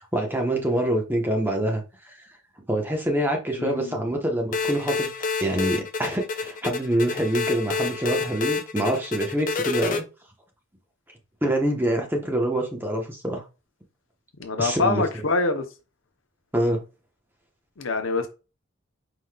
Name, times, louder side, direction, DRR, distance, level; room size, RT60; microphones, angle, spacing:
voice 1, 0.0-2.3 2.7-5.1 5.4-10.0 11.4-13.4 14.6-15.2 16.5-16.8, right 1 dB, 10° right, 1.0 m, -25 dB
voice 2, 3.6-4.0 14.4-15.6 17.8-18.3, left 3 dB, 85° left, 0.8 m, -25 dB
sound 1, 4.5-10.0, left 4 dB, 40° left, 0.5 m, -28 dB
4.9 x 3.9 x 2.3 m
head